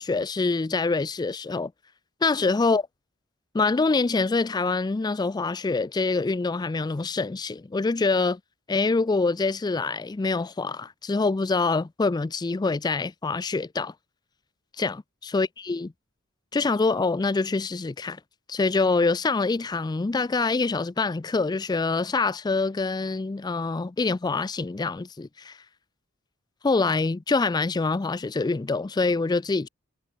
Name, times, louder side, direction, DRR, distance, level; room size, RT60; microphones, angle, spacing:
voice 1, 0.0-1.7 2.2-2.9 3.5-8.4 8.7-13.9 14.8-15.9 16.5-18.2 18.5-25.6 26.6-29.7, left 3 dB, 20° left, 0.4 m, -25 dB
head